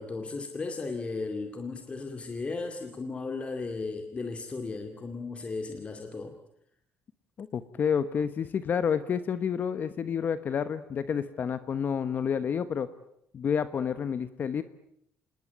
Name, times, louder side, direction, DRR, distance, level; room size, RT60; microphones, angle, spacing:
voice 1, 0.0-6.4, left 3 dB, 25° left, 5 dB, 2.4 m, -35 dB
voice 2, 7.4-12.9 13.3-14.6, left 7 dB, 45° left, 12 dB, 1.2 m, -29 dB
26.5 x 20.5 x 9.4 m, 0.76 s
cardioid pair, 125°, 5 cm